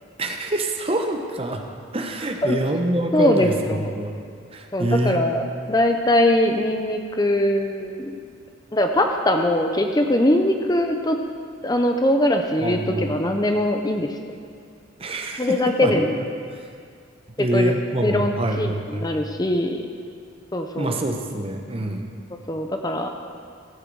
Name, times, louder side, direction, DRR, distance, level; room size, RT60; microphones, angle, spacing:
voice 1, 0.2-1.6 1.9-4.1 4.5-5.2 12.6-13.2 15.0-16.0 16.5-16.6 17.4-19.1 20.8-22.0, right 1 dB, 30° right, 4 dB, 0.8 m, -25 dB
voice 2, 3.1-3.9 4.7-8.1 8.7-11.2 11.6-14.1 15.4-16.2 17.4-17.7 18.0-19.8 20.5-21.0 22.5-23.1, left 1 dB, 20° left, 4 dB, 0.6 m, -21 dB
15.5 x 8.1 x 4.7 m, 2.2 s
head